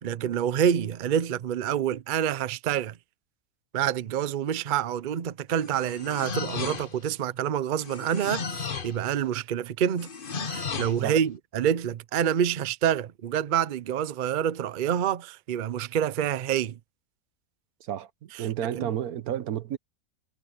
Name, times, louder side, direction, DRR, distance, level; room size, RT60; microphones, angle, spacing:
voice 1, 0.0-3.0 3.7-10.1 10.5-16.8 18.3-18.5 18.7-18.9, right 9 dB, 50° right, 0.6 m, -27 dB
sound 1, 5.5-7.1 7.8-9.0 10.0-11.0, left 5 dB, 40° left, 1.2 m, -34 dB
voice 2, 17.8-19.8, right 10 dB, 90° right, 1.4 m, -31 dB
omnidirectional pair, 1.5 m